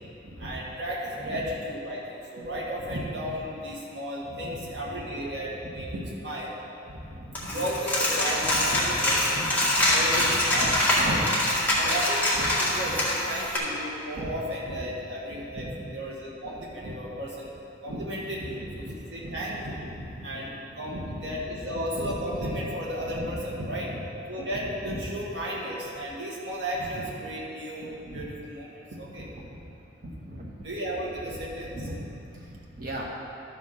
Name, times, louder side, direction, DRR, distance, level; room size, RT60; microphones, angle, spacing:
voice 1, 0.2-6.5 6.9-7.0 7.4-11.2 11.7-17.5 17.8-20.5 20.8-28.7 29.0-29.3 30.0-30.1 30.6-31.9 32.3-32.5 32.8-32.9, equal, 65° right, -5 dB, 2.1 m, -33 dB
voice 2, 7.0-7.4 12.7-12.9 15.7-15.9 18.4-18.9 20.8-21.3 23.7-24.0 28.0-28.1 30.3-30.6 32.4-32.5 32.8-33.0, right 1 dB, 50° right, -3 dB, 1.4 m, -41 dB
Coin (dropping), 7.4-13.6, left 1 dB, 10° left, 1.8 m, -24 dB
12.5 x 4.9 x 5.6 m, 2.7 s
head